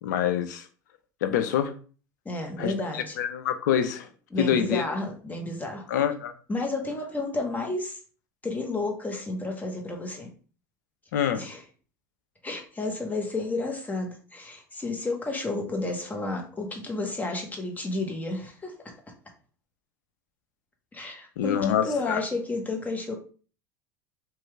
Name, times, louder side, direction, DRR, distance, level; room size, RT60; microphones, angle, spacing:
voice 1, 0.0-0.7 1.2-1.7 2.6-4.1 4.4-4.9 5.9-6.3 11.1-11.4 21.4-22.2, left 9 dB, 80° left, 8 dB, 0.5 m, -26 dB
voice 2, 2.2-3.2 4.3-5.8 6.5-8.0 8.4-10.3 11.4-11.6 12.4-18.7 20.9-23.1, left 2 dB, 15° left, 2 dB, 1.0 m, -31 dB
3.0 x 2.3 x 3.2 m, 0.39 s
hypercardioid pair, 85°, 10 cm